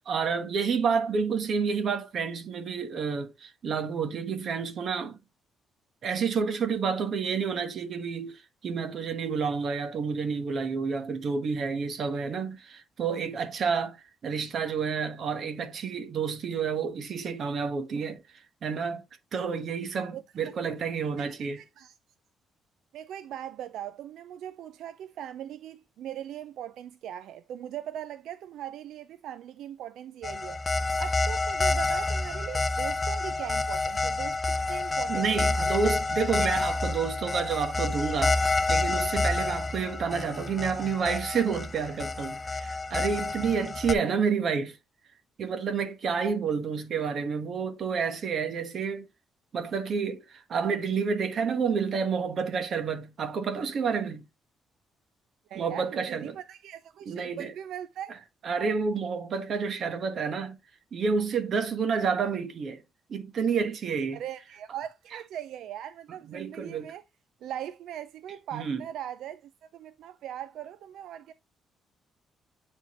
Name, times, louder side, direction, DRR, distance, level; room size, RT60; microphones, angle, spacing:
voice 1, 0.0-5.2 6.0-18.2 18.6-19.0 19.3-21.6 35.1-38.4 38.7-44.8 45.4-49.0 49.5-54.3 55.5-56.3 57.1-57.5 58.4-60.6 60.9-62.8 63.1-64.2 66.3-66.9 68.5-68.8, right 5 dB, 45° right, 1.1 m, -29 dB
voice 2, 21.2-21.9 22.9-35.9 55.5-58.2 64.1-67.0 67.4-71.3, right 11 dB, 70° right, 0.4 m, -40 dB
sound 1, 30.2-43.9, left 3 dB, 15° left, 0.4 m, -28 dB
9.0 x 3.7 x 2.9 m
cardioid pair, 170°, 0 cm